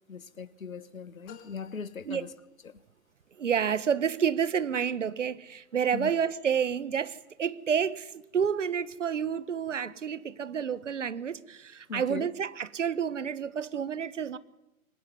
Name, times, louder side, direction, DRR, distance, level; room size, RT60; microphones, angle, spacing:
voice 1, 0.1-2.3 2.6-2.8 5.9-6.1 11.9-12.3, left 5 dB, 65° left, 1.6 m, -39 dB
sound 1, 1.2-2.9, left 9 dB, 20° left, 2.5 m, -55 dB
voice 2, 3.4-14.4, right 7 dB, 55° right, 1.5 m, -29 dB
26.5 x 22.0 x 9.6 m
figure-of-eight pair, 125°, 44 cm